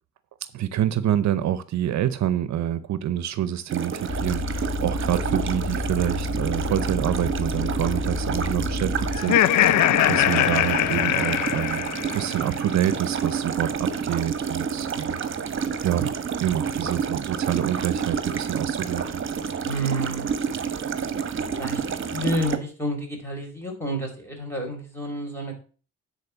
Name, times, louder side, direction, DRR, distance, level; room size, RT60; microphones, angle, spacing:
voice 1, 0.5-11.9 12.1-15.2 15.8-16.1 16.4-19.2, right 11 dB, 65° right, 0.7 m, -27 dB
sound 1, 3.7-22.6, right 6 dB, 40° right, 1.2 m, -29 dB
sound 2, 4.1-9.2, left 3 dB, 25° left, 1.3 m, -30 dB
Laughter, 9.1-12.4, left 13 dB, 70° left, 0.5 m, -21 dB
voice 2, 19.7-20.3 21.6-21.8 22.1-25.5, right 1 dB, 10° left, 4.5 m, -29 dB
9.4 x 4.3 x 6.9 m
cardioid pair, 90°, 30 cm